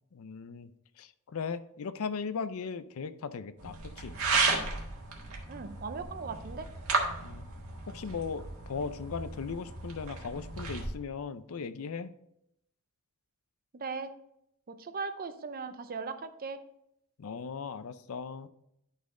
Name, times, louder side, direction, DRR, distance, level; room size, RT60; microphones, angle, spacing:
voice 1, 0.1-0.7 1.0-4.2 7.2-7.5 7.9-12.1 17.2-18.5, left 5 dB, 70° left, 14 dB, 0.5 m, -38 dB
sound 1, 3.6-10.9, right 4 dB, 70° right, 1.6 m, -34 dB
voice 2, 5.5-6.7 13.7-14.1 14.7-16.6, right 4 dB, 40° right, 10 dB, 0.6 m, -38 dB
11.5 x 4.2 x 3.7 m, 0.78 s
head